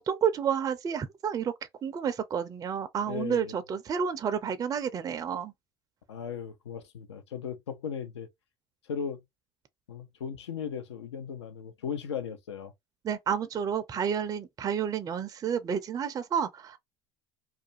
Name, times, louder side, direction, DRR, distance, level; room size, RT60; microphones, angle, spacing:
voice 1, 0.1-1.5 1.8-5.5 13.0-16.8, right 7 dB, 25° right, 0.4 m, -30 dB
voice 2, 3.1-3.6 6.1-8.3 8.9-9.2 9.9-12.7, left 7 dB, 85° left, 0.5 m, -37 dB
2.4 x 2.2 x 2.7 m
hypercardioid pair, 75°, 14 cm